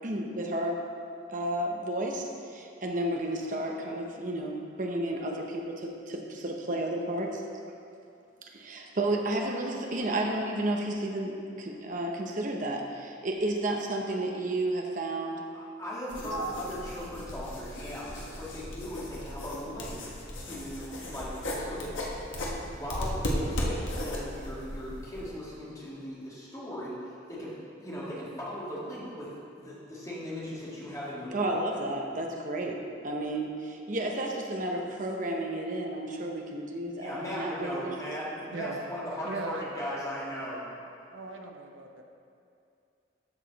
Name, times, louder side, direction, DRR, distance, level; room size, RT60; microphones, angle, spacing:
voice 1, 0.0-0.8 1.3-7.4 8.5-15.4 16.3-16.5 31.3-37.9, right 1 dB, 40° right, 1 dB, 0.9 m, -32 dB
voice 2, 15.5-20.0 20.3-22.3 22.7-27.5 27.8-31.6 37.0-40.7, equal, 15° left, -8 dB, 1.9 m, -38 dB
sound 1, 16.1-25.3, left 1 dB, 85° left, 1.3 m, -36 dB
voice 3, 39.2-39.9 41.1-42.0, right 3 dB, 85° right, 3 dB, 0.8 m, -38 dB
13.5 x 4.9 x 4.1 m, 2.5 s
head